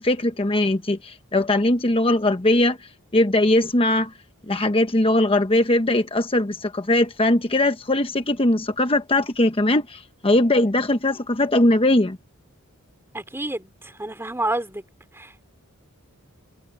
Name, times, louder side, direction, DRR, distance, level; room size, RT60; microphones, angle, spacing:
voice 1, 0.0-2.8 3.1-4.1 4.5-12.2, left 1 dB, 25° left, 1.1 m, -20 dB
voice 2, 13.1-14.8 15.1-15.5, right 2 dB, 10° right, 3.0 m, -29 dB
head